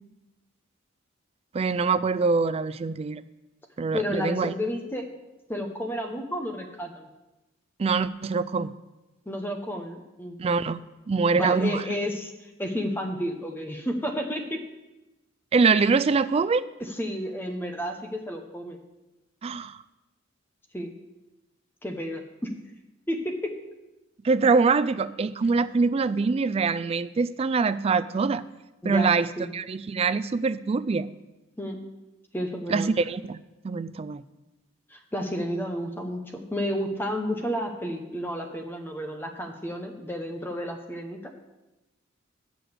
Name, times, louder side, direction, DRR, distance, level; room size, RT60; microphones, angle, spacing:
voice 1, 1.5-3.2 3.8-4.5 7.8-8.7 10.4-10.8 11.1-11.8 15.5-16.6 19.4-19.8 24.2-28.4 28.8-29.3 29.5-31.1 32.7-34.2, right 4 dB, 30° right, 15 dB, 0.3 m, -24 dB
voice 2, 3.9-5.0 5.5-7.1 9.3-10.4 11.4-14.6 15.7-15.9 16.8-18.8 20.7-20.9 21.8-22.5 23.1-23.5 28.8-29.5 31.6-31.8 32.3-32.9 34.9-41.3, equal, 10° left, 3 dB, 0.8 m, -31 dB
7.7 x 6.8 x 7.9 m, 1.0 s
head